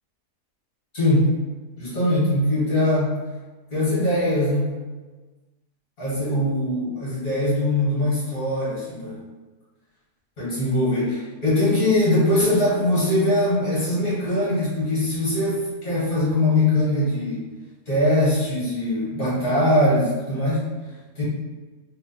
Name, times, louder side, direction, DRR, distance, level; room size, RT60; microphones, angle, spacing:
voice 1, 0.9-1.3 1.8-3.2 3.7-4.7 6.0-9.2 10.4-17.5 17.9-20.7 21.2-21.3, left 1 dB, 60° left, -9 dB, 2.0 m, -21 dB
3.5 x 2.4 x 3.9 m, 1.3 s
omnidirectional pair, 1.6 m